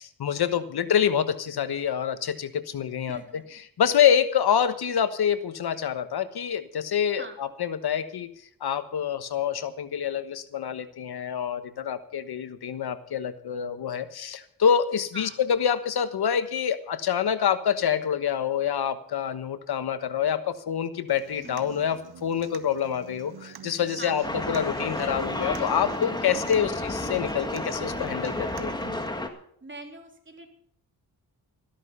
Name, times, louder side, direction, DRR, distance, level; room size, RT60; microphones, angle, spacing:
voice 1, 0.0-8.3 8.6-28.8, left 8 dB, 70° left, 11 dB, 1.3 m, -26 dB
voice 2, 3.1-3.6 7.2-7.4 15.1-15.4 21.4-22.0 24.0-24.4 26.3-26.7 29.6-30.5, right 2 dB, 30° right, 3 dB, 3.3 m, -44 dB
Human voice / Acoustic guitar, 21.1-29.1, right 8 dB, 70° right, 1.3 m, -45 dB
sound 1, 24.2-29.3, left 1 dB, 10° left, 1.8 m, -31 dB
13.5 x 13.0 x 5.5 m, 0.65 s
cardioid pair, 85°, 39 cm